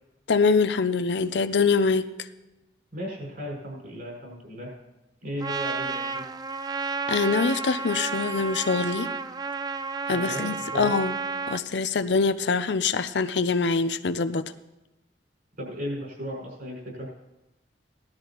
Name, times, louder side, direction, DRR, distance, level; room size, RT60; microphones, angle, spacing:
voice 1, 0.3-2.1 7.1-9.1 10.1-11.1 11.5-14.4, left 4 dB, 70° left, 10 dB, 0.6 m, -24 dB
voice 2, 2.9-4.7 5.2-6.2 10.1-10.9 15.6-17.1, equal, 55° right, -3 dB, 5.5 m, -35 dB
Trumpet, 5.4-11.6, right 5 dB, 25° right, 0.4 m, -31 dB
17.5 x 12.0 x 3.0 m, 0.98 s
head